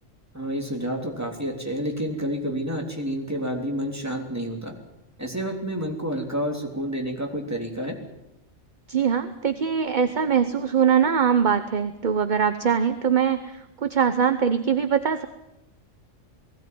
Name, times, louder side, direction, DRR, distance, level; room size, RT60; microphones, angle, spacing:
voice 1, 0.3-4.7 5.2-8.0, equal, 10° right, 1 dB, 3.3 m, -29 dB
voice 2, 8.9-15.3, right 7 dB, 40° right, 10 dB, 1.0 m, -22 dB
20.0 x 17.0 x 9.5 m, 0.88 s
omnidirectional pair, 1.4 m